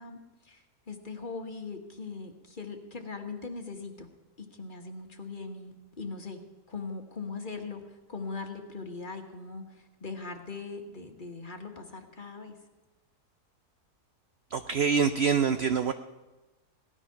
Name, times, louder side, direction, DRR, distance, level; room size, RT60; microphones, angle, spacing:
voice 1, 0.0-4.1 4.4-6.4 6.7-12.6, left 4 dB, 35° left, 5 dB, 1.4 m, -40 dB
voice 2, 14.5-15.9, right 6 dB, 65° right, 10 dB, 0.6 m, -25 dB
17.5 x 12.5 x 5.7 m, 1.1 s
omnidirectional pair, 1.6 m